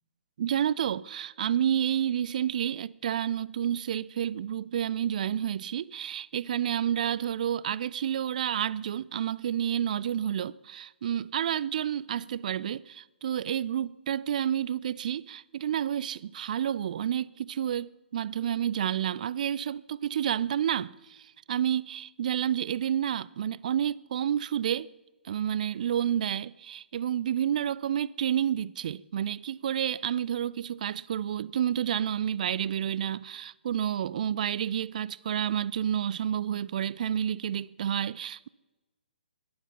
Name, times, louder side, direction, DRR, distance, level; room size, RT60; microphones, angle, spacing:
voice 1, 0.4-24.9 25.2-38.5, right 9 dB, 45° right, 0.4 m, -30 dB
23.0 x 11.0 x 5.7 m
figure-of-eight pair, 130°, 6 cm